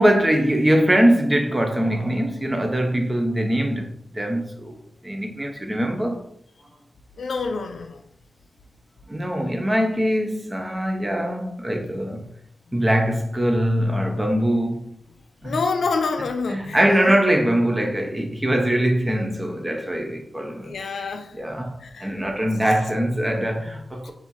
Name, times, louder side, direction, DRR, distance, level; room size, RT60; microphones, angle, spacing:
voice 1, 0.0-4.8 5.0-6.2 9.1-12.3 12.7-15.0 15.4-15.6 16.5-20.8 21.3-24.1, equal, 20° right, 0.8 m, -22 dB
voice 2, 7.2-8.0 15.4-16.8 20.6-21.3 21.8-22.1, left 4 dB, 80° left, 0.5 m, -27 dB
4.3 x 2.8 x 4.4 m
cardioid pair, 65°, 0 cm